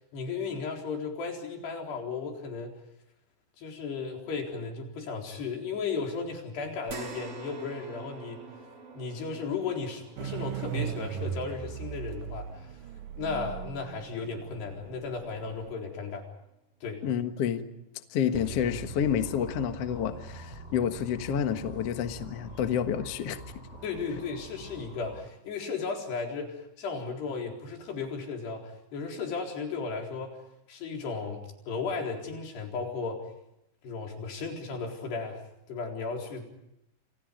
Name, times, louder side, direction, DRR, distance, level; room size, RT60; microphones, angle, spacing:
voice 1, 0.1-2.7 3.6-8.4 8.9-12.8 13.2-16.2 16.8-17.0 23.8-30.4 30.7-33.2 33.8-35.4 35.7-36.5, left 4 dB, 65° left, 2 dB, 6.1 m, -35 dB
sound 1, 6.9-15.5 15.9-16.0 17.5-17.6, right 4 dB, 35° right, 3.6 m, -48 dB
sound 2, 10.2-15.7, right 10 dB, 75° right, 1.9 m, -37 dB
voice 2, 17.0-17.6 18.1-23.4, left 8 dB, 80° left, 7 dB, 1.3 m, -29 dB
sound 3, 18.3-25.2, right 1 dB, 15° right, 6.2 m, -44 dB
29.0 x 26.5 x 5.2 m, 0.84 s
omnidirectional pair, 5.2 m